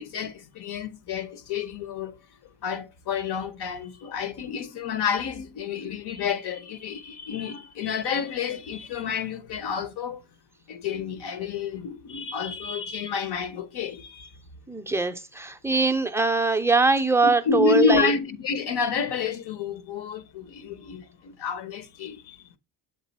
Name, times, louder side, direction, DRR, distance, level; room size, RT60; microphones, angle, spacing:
voice 1, 0.0-2.2 2.6-10.2 10.7-14.3 17.2-22.6, left 6 dB, 60° left, 0.9 m, -29 dB
voice 2, 14.7-18.1, right 3 dB, 5° right, 0.4 m, -22 dB
7.4 x 3.8 x 4.1 m
cardioid pair, 120°, 47 cm